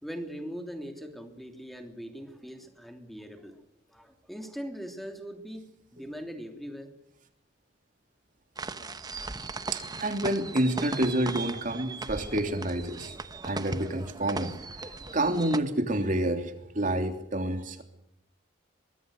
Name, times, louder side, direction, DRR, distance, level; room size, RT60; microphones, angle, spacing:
voice 1, 0.0-3.6 3.9-6.9, equal, ahead, 5 dB, 3.0 m, -41 dB
sound 1, 8.6-15.6, right 3 dB, 20° right, 1.0 m, -38 dB
voice 2, 9.7-13.1 13.4-14.5 15.1-17.8, right 1 dB, 40° right, 6 dB, 3.2 m, -28 dB
24.0 x 22.0 x 6.5 m, 0.80 s
head